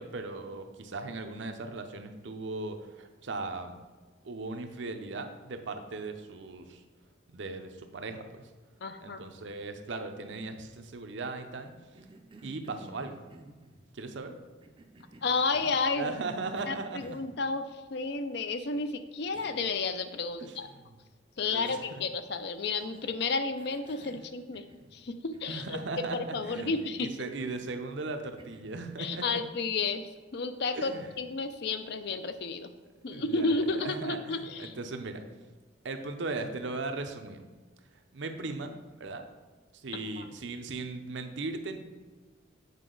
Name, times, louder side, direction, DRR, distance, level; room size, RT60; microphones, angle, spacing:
voice 1, 0.0-3.7 4.2-6.8 7.3-8.4 9.0-11.7 12.4-13.2 13.9-14.4 16.0-17.1 20.4-20.9 21.4-22.0 25.5-29.2 30.7-31.1 33.1-35.2 35.8-37.4 38.1-39.2 39.7-41.8, right 3 dB, 70° right, 6 dB, 0.6 m, -38 dB
voice 2, 8.8-9.2 15.2-16.1 16.7-17.7 17.9-20.7 21.4-24.7 24.9-27.1 29.0-30.1 30.3-30.9 31.2-32.7 33.0-34.7 39.9-40.3, left 4 dB, 55° left, 9 dB, 0.5 m, -32 dB
Cough, 11.6-13.8 14.6-15.9 16.5-17.3 18.7-18.8 19.3-19.7 20.1-20.2 21.6-22.2 22.8-23.2 23.6-25.0 25.3-26.4 26.7-27.0 27.4-27.8 28.4-28.9, right 2 dB, 25° right, 0.5 m, -53 dB
8.1 x 4.9 x 3.8 m, 1.4 s
head